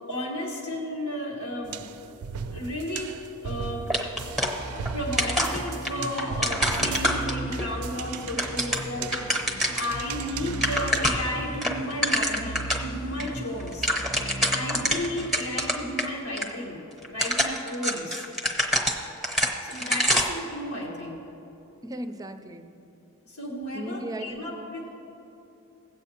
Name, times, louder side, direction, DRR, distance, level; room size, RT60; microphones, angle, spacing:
voice 1, 0.1-1.9 2.5-3.9 4.9-13.9 14.5-18.3 19.6-21.2 23.3-24.9, left 1 dB, 90° left, -5 dB, 1.3 m, -33 dB
sound 1, 1.6-11.0, right 6 dB, 90° right, 0.4 m, -38 dB
sound 2, 3.9-4.9 5.2-7.7 8.1-9.9 10.3-10.4 10.5-11.3 11.6-12.9 13.2-13.3 13.6-16.1 16.4-16.5 17.0-20.4, equal, ahead, 0.9 m, -26 dB
sound 3, 4.2-16.0, right 1 dB, 65° left, 0.6 m, -38 dB
voice 2, 21.8-22.7 23.7-24.7, right 1 dB, 15° right, 7 dB, 0.5 m, -36 dB
17.0 x 8.2 x 2.8 m, 3.0 s
head